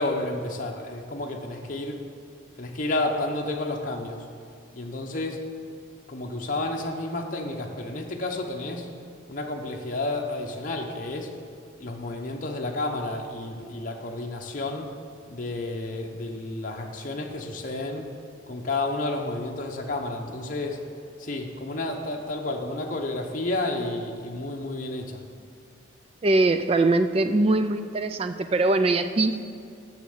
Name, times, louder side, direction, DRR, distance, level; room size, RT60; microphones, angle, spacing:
voice 1, 0.0-2.0 2.6-4.3 4.7-5.4 6.1-8.9 9.3-11.3 11.8-14.9 15.3-18.1 18.5-20.8 21.2-25.2, left 2 dB, 40° left, 0 dB, 0.8 m, -31 dB
voice 2, 26.2-29.3, right 2 dB, 30° right, 9 dB, 0.3 m, -22 dB
7.0 x 6.4 x 7.8 m, 2.4 s
head